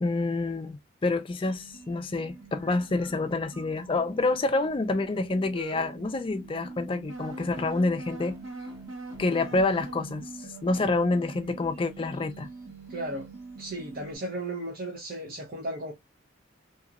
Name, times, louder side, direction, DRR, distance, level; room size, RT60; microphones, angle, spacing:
voice 1, 0.0-8.4 9.2-10.3 10.6-12.5, left 3 dB, 25° left, 0.3 m, -27 dB
sound 1, 1.4-14.2, right 3 dB, 80° right, 1.1 m, -43 dB
voice 2, 12.9-13.3 13.6-15.9, right 1 dB, 45° right, 0.7 m, -35 dB
2.8 x 2.8 x 2.3 m
head